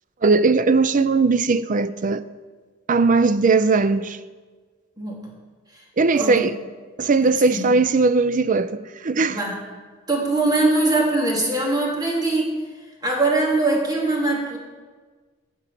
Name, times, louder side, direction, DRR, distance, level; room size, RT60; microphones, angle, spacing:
voice 1, 0.2-2.2 2.9-4.2 6.0-6.5 7.0-9.4, right 4 dB, 40° right, 0.5 m, -19 dB
voice 2, 5.0-5.3 6.1-6.5 7.2-7.7 9.3-9.6 10.1-12.6 13.0-14.6, right 2 dB, 20° right, 2.7 m, -22 dB
15.0 x 5.5 x 8.3 m
head